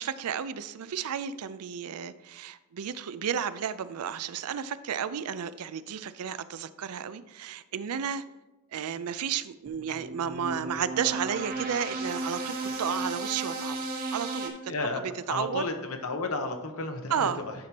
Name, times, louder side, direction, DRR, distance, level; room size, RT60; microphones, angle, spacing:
voice 1, 0.0-8.2 8.7-13.8 14.1-15.6 17.1-17.4, right 8 dB, 80° right, 14 dB, 0.4 m, -32 dB
sound 1, 9.7-14.5, right 2 dB, 40° right, 1.2 m, -34 dB
voice 2, 14.7-15.0 15.3-17.5, left 3 dB, 70° left, 5 dB, 0.8 m, -32 dB
10.0 x 6.0 x 2.9 m, 1.1 s
head